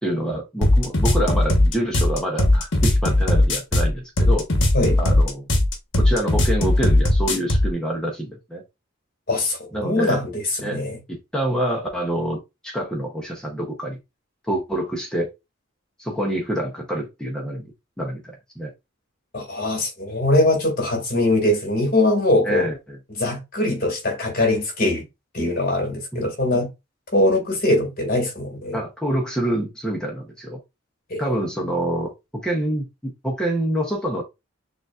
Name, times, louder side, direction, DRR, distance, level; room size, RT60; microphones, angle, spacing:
voice 1, 0.0-4.5 5.0-5.4 6.0-8.6 9.7-10.2 10.6-14.0 14.5-15.3 16.0-17.7 18.0-18.7 22.4-23.0 26.1-26.7 28.7-30.6 31.2-34.2, right 1 dB, 5° left, 0.7 m, -26 dB
sound 1, 0.6-7.7, left 1 dB, 60° left, 1.1 m, -18 dB
voice 2, 9.3-10.4 10.7-11.0 19.3-22.7 23.2-25.0 25.3-26.7 27.1-28.8 31.1-31.2, left 1 dB, 40° left, 2.1 m, -22 dB
6.5 x 2.5 x 2.4 m
head